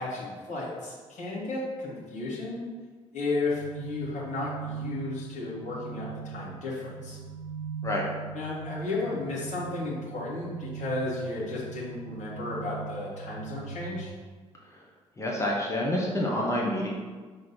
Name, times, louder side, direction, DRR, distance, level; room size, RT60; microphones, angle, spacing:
voice 1, 0.0-2.7 3.1-7.2 8.3-14.1, left 2 dB, 50° left, -6 dB, 1.7 m, -33 dB
sound 1, 3.5-14.1, right 7 dB, 60° right, 1.2 m, -40 dB
voice 2, 15.2-16.9, left 1 dB, 20° left, -4 dB, 1.2 m, -28 dB
5.8 x 3.1 x 5.7 m, 1.4 s
figure-of-eight pair, 45°, 16 cm